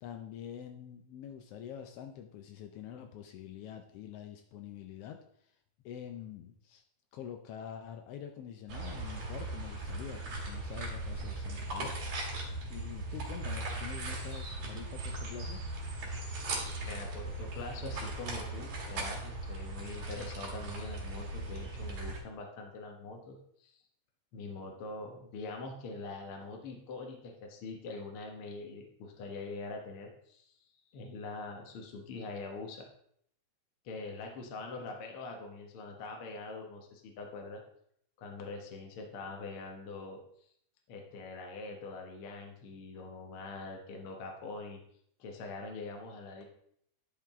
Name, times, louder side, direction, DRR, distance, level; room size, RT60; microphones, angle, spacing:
voice 1, 0.0-5.5 5.8-6.8 7.1-12.0 12.7-15.6, left 9 dB, 80° left, 5 dB, 1.3 m, -46 dB
sound 1, 8.7-22.2, right 2 dB, 70° right, 3.5 m, -38 dB
voice 2, 16.8-23.8 24.3-32.9 33.8-37.6 38.2-40.5 40.9-44.8 45.2-46.4, left 3 dB, 60° left, 2 dB, 1.7 m, -43 dB
11.0 x 5.9 x 3.6 m, 0.69 s
omnidirectional pair, 3.4 m